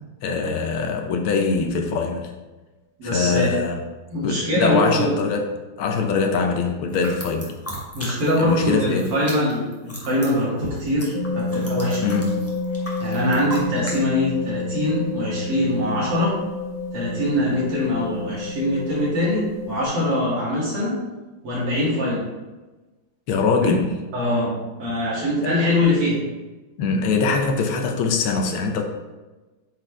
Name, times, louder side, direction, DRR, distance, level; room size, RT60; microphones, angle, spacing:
voice 1, 0.2-2.3 3.1-3.8 4.2-5.5 5.8-7.6 8.4-9.2 12.0-12.3 23.3-23.8 25.4-25.5 26.8-28.8, left 4 dB, 75° left, 3 dB, 1.6 m, -23 dB
voice 2, 3.0-3.5 4.1-5.2 7.9-12.2 13.0-16.3 16.9-21.0 21.4-22.2 23.6-23.8 24.1-24.5 24.8-26.2, left 1 dB, 85° right, -7 dB, 3.5 m, -23 dB
sound 1, 6.9-8.6 8.8-14.0, equal, 10° left, 0.8 m, -37 dB
sound 2, 11.1-19.8, left 3 dB, 55° left, 1.2 m, -29 dB
8.6 x 4.3 x 3.4 m, 1.2 s
omnidirectional pair, 2.4 m